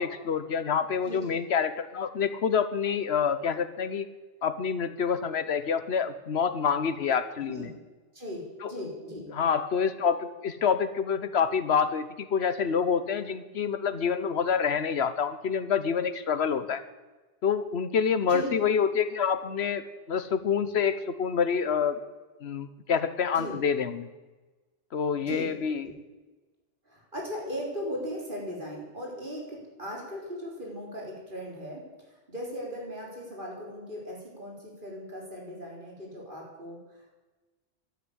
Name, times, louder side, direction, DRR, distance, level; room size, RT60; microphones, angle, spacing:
voice 1, 0.0-4.1 4.4-7.7 8.6-8.7 9.3-16.8 17.4-22.0 22.4-24.1 24.9-25.9, left 6 dB, 85° left, 13 dB, 1.2 m, -27 dB
voice 2, 1.0-1.4 7.5-7.7 8.1-9.3 18.3-18.5 23.3-23.5 25.2-25.5 25.8-25.9 26.9-31.8 32.3-37.1, equal, 50° right, -2 dB, 4.3 m, -38 dB
12.5 x 9.9 x 9.7 m, 1.2 s
omnidirectional pair, 1.1 m